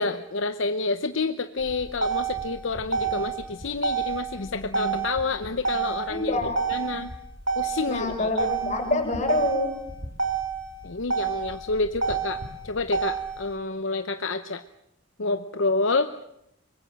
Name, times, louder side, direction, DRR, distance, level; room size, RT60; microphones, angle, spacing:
voice 1, 0.0-6.4 6.7-7.1 7.6-8.5 10.8-14.6 15.2-16.1, left 3 dB, 65° left, 9 dB, 0.8 m, -28 dB
Motor vehicle (road), 1.6-13.6, right 6 dB, 60° right, 3.9 m, -30 dB
voice 2, 6.1-6.8 7.9-9.7, left 2 dB, 35° left, 3 dB, 6.1 m, -26 dB
24.0 x 21.5 x 7.7 m, 0.81 s
head